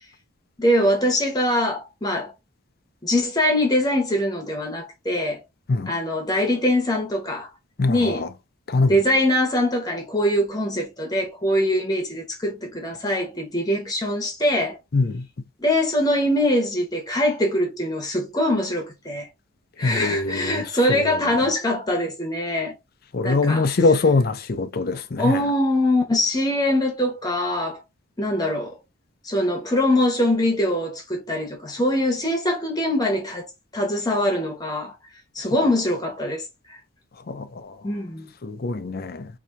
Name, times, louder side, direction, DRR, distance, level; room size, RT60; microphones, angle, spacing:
voice 1, 0.6-2.3 3.0-5.4 5.9-7.5 7.9-8.3 8.9-14.8 15.6-19.3 19.8-22.7 23.2-23.7 25.2-27.8 28.2-28.8 29.2-33.5 33.7-34.9 35.3-36.8 37.8-38.3, left 1 dB, 20° left, 1.0 m, -23 dB
voice 2, 7.8-8.3 8.7-9.0 14.9-15.3 19.8-21.1 23.1-25.4 37.3-37.7 38.4-39.3, left 3 dB, 45° left, 0.5 m, -23 dB
4.3 x 2.8 x 2.5 m
head